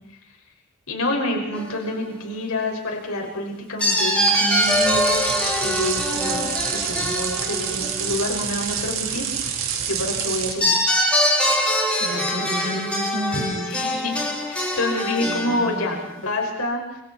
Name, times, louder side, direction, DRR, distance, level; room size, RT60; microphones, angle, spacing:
voice 1, 0.9-5.2 5.6-6.5 6.7-10.8 13.3-14.2 14.5-17.0, left 1 dB, 70° left, 1 dB, 5.9 m, -28 dB
sound 1, 1.5-1.9 3.8-8.2 10.6-15.9, equal, 5° left, 5.2 m, -23 dB
sound 2, 4.6-10.5, right 7 dB, 65° right, 3.9 m, -27 dB
voice 2, 12.0-13.7 15.3-16.0, right 1 dB, 50° right, 2 dB, 3.6 m, -31 dB
29.0 x 27.5 x 4.4 m, 0.80 s
head